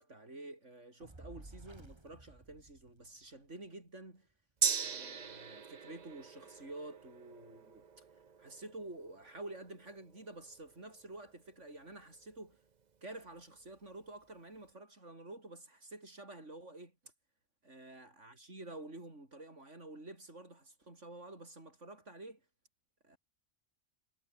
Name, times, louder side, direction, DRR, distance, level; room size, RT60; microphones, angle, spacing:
voice 1, 0.0-4.3 4.8-8.1 8.4-12.6 13.0-17.1 17.6-22.4 23.0-23.2, right 2 dB, 70° right, 6.1 m, -50 dB
Fire, 1.0-3.5, right 2 dB, 20° right, 1.9 m, -54 dB
Gong, 4.6-12.4 12.7-12.8, right 6 dB, 40° right, 1.0 m, -41 dB
omnidirectional pair, 1.3 m